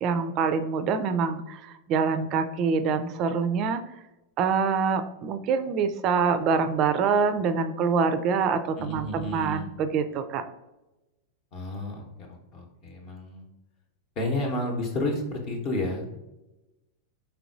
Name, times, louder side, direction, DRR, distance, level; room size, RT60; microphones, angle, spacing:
voice 1, 0.0-3.8 4.4-10.4, right 5 dB, 35° right, 10 dB, 0.4 m, -25 dB
voice 2, 8.8-9.7 11.5-13.5 14.2-16.2, left 2 dB, 40° left, 2 dB, 0.8 m, -31 dB
4.4 x 3.7 x 2.5 m, 1.0 s
figure-of-eight pair, 90°, 0 cm